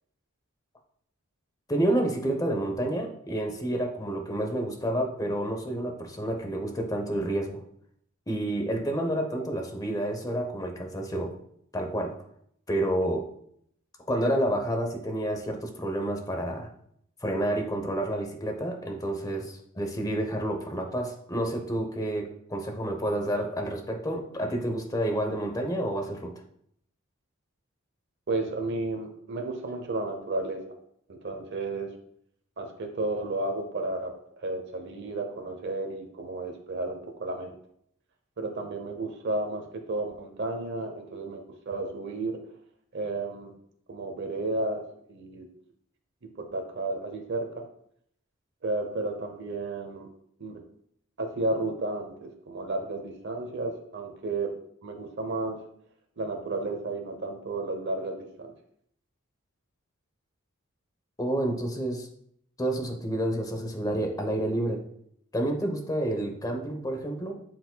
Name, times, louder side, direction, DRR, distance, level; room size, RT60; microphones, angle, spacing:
voice 1, 1.7-7.6 8.3-11.3 11.7-12.2 12.7-13.3 14.1-16.7 17.2-26.3 61.2-62.1 62.6-64.8 65.3-67.3, right 1 dB, 15° left, 3 dB, 0.9 m, -29 dB
voice 2, 28.3-30.6 31.1-31.9 32.6-37.6 38.4-42.4 42.9-43.5 43.9-45.5 46.2-47.6 48.6-50.1 50.4-50.6 51.2-55.6 56.2-58.5, right 2 dB, 55° right, 3 dB, 0.9 m, -32 dB
11.5 x 4.8 x 2.3 m, 0.68 s
head